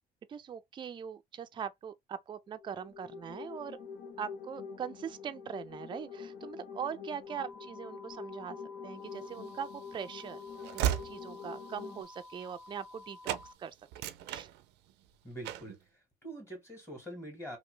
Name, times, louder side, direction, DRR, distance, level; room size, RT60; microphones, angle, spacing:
voice 1, 0.3-3.8 4.2-8.6 8.8-10.4 10.7-13.7 14.3-14.5, right 7 dB, 30° right, 0.4 m, -41 dB
sound 1, 2.6-12.0, left 6 dB, 60° left, 0.8 m, -46 dB
sound 2, 7.3-13.6, left 3 dB, ahead, 0.8 m, -52 dB
Train / Slam, 9.4-13.0 13.2-13.5 13.8-15.0 15.4-15.8, right 12 dB, 90° right, 0.5 m, -37 dB
voice 2, 15.2-17.6, right 1 dB, 15° left, 1.7 m, -45 dB
2.9 x 2.4 x 3.2 m
cardioid pair, 110°, 17 cm